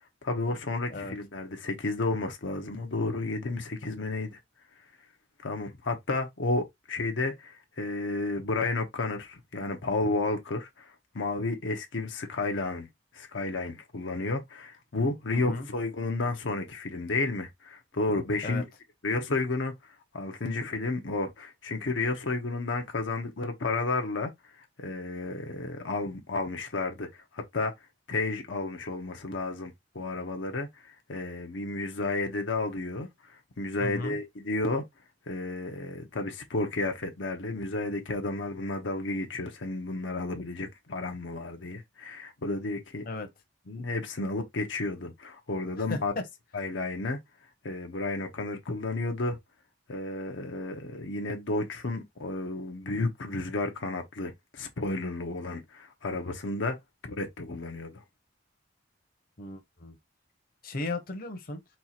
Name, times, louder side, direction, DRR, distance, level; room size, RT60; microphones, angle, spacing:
voice 1, 0.2-4.4 5.4-10.9 11.1-12.9 13.1-18.6 19.0-19.7 20.1-24.3 24.8-27.1 27.3-27.7 28.1-33.1 33.6-34.8 35.3-43.0 43.7-46.1 46.5-47.2 47.6-49.4 49.9-56.8 57.0-57.9, left 3 dB, 80° left, 0.9 m, -32 dB
voice 2, 15.3-15.7 18.4-18.6 33.8-34.2 43.0-43.3 45.9-46.3 59.4-60.0 60.6-61.6, left 2 dB, 50° left, 0.9 m, -35 dB
4.4 x 2.4 x 4.3 m
head